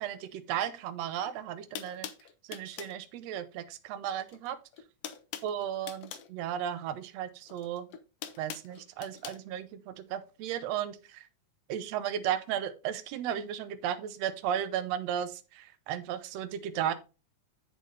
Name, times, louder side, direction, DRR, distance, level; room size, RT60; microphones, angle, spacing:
voice 1, 0.0-2.1 2.4-4.6 5.4-7.9 8.4-11.3 11.7-16.9, right 10 dB, 70° right, 11 dB, 1.8 m, -35 dB
sound 1, 1.2-1.3 1.7-3.0 4.2-4.5 4.7-6.3 7.5-9.4, left 10 dB, 70° left, 1.5 m, -43 dB
8.0 x 7.8 x 3.3 m, 0.31 s
omnidirectional pair, 3.5 m